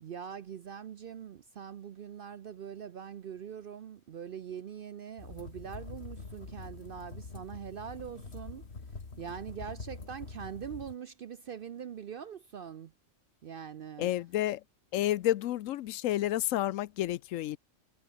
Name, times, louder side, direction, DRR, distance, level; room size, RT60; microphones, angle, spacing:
voice 1, 0.0-8.6 9.2-12.9 13.4-14.1, right 8 dB, 60° right, 0.6 m, -43 dB
sound 1, 5.2-10.9, left 4 dB, 50° left, 2.6 m, -45 dB
voice 2, 14.0-14.6 14.9-17.6, left 13 dB, 75° left, 0.9 m, -30 dB
omnidirectional pair, 1.4 m